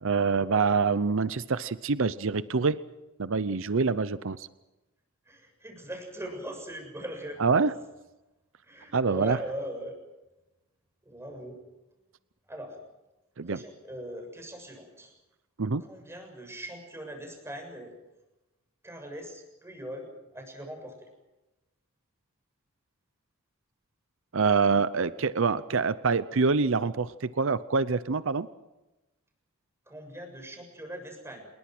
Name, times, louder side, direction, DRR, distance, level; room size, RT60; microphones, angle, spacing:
voice 1, 0.0-2.8 3.2-4.5 7.4-7.7 8.9-9.4 13.4-13.6 15.6-15.8 24.3-28.5, right 4 dB, 65° right, 15 dB, 0.7 m, -25 dB
voice 2, 5.3-7.7 8.6-10.0 11.0-11.6 12.5-12.8 13.4-15.1 15.8-17.9 18.8-21.1 29.9-31.5, equal, 15° right, 3 dB, 7.1 m, -40 dB
28.0 x 22.0 x 6.1 m, 1.0 s
head